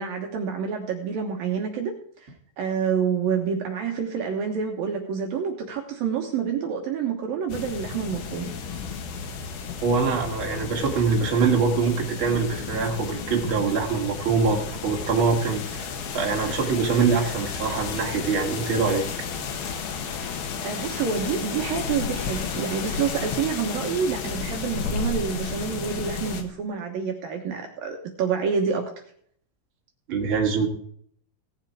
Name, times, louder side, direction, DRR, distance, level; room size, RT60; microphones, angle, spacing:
voice 1, 0.0-2.3 2.6-8.5 20.6-28.9, right 6 dB, 65° right, 3 dB, 2.5 m, -28 dB
sound 1, 7.5-26.4, left 6 dB, 60° left, 2.8 m, -32 dB
voice 2, 9.8-15.9 16.1-19.0 30.1-30.7, right 5 dB, 40° right, 1 dB, 2.1 m, -24 dB
18.0 x 7.4 x 4.8 m, 0.63 s
omnidirectional pair, 5.4 m